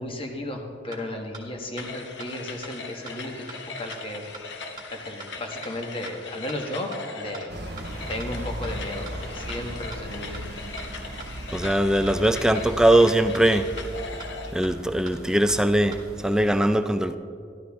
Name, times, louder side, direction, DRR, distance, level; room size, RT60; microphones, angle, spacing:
voice 1, 0.0-4.2 4.9-7.5 8.1-10.4, left 1 dB, 30° left, 2 dB, 1.3 m, -34 dB
sound 1, 0.9-1.0 1.3-1.4 1.8-1.9 2.2-2.3 2.6-2.7 3.1-3.2 3.5-3.6 3.9-4.0 4.3-4.4 4.8-4.9 5.2-5.3 5.6-5.7 6.1-6.2 6.5-6.6 6.9-7.0 7.3-7.4 7.8-7.9 8.2-8.3 8.6-8.7 9.1-9.2 9.5-9.6 9.9-10.0 10.3-10.4 10.8-10.9 11.2-11.3 11.6-11.7 12.1-12.2 12.5-12.6 12.9-13.0 13.3-13.4 13.8-13.9 14.2-14.3 14.6-14.7 15.1-15.2 15.5-15.6 15.9-16.0, right 4 dB, 20° right, 1.6 m, -41 dB
sound 2, 1.8-14.6, left 4 dB, 70° left, 0.9 m, -40 dB
sound 3, 7.5-16.6, right 1 dB, 55° right, 1.0 m, -38 dB
voice 2, 11.5-13.7 14.5-17.2, right 1 dB, 5° right, 9 dB, 0.3 m, -21 dB
13.0 x 12.5 x 3.5 m, 2.3 s
head